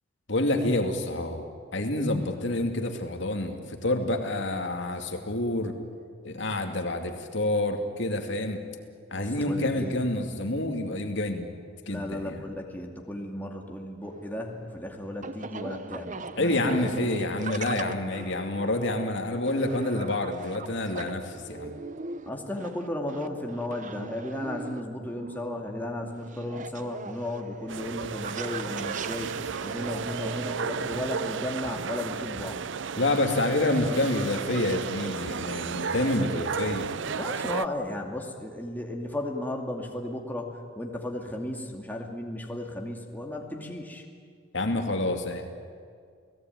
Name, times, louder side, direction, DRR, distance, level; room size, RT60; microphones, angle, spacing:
voice 1, 0.3-1.5 1.7-5.8 6.2-8.6 9.1-11.5 11.9-12.4 16.3-21.7 33.0-36.9 44.5-45.4, left 1 dB, 65° left, 4 dB, 2.5 m, -28 dB
voice 2, 9.1-10.0 11.9-17.0 22.3-29.3 29.6-32.6 37.1-44.0, left 1 dB, 10° left, 1 dB, 2.4 m, -35 dB
sound 1, 14.0-30.7, right 4 dB, 40° right, 0.9 m, -40 dB
sound 2, 27.7-37.7, right 6 dB, 65° right, 0.6 m, -33 dB
29.5 x 18.0 x 9.4 m, 2.2 s
head